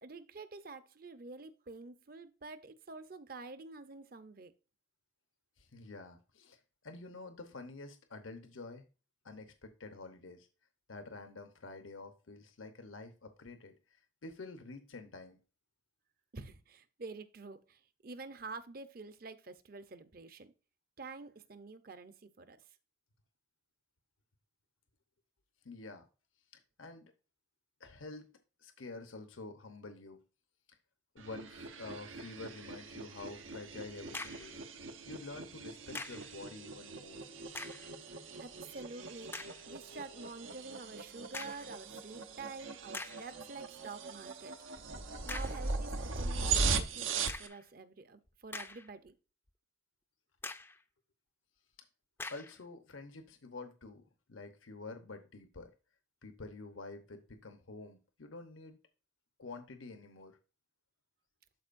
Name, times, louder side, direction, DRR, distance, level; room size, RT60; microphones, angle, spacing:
voice 1, 0.0-4.5 16.3-20.5 21.0-22.6 38.4-39.3 39.7-44.5 45.2-49.1, right 3 dB, 45° right, 0.7 m, -48 dB
voice 2, 5.6-8.8 9.2-10.5 10.9-15.4 25.6-26.1 26.5-27.1 27.8-30.2 30.7-30.8 31.1-34.6 35.1-37.2 52.3-55.7 56.2-58.8 59.4-60.4, left 3 dB, 90° left, 0.9 m, -48 dB
sound 1, 31.2-47.5, right 4 dB, 85° right, 1.0 m, -39 dB
sound 2, 34.1-34.5 35.9-36.3 37.4-37.9 38.5-38.6 39.3-39.6 41.3-41.7 42.4-42.5 42.9-43.3 45.3-45.7 47.3-47.6 48.3-49.1 49.5-49.6 50.4-50.8 52.2-52.6, left 3 dB, 10° left, 0.4 m, -44 dB
12.0 x 4.5 x 2.5 m
head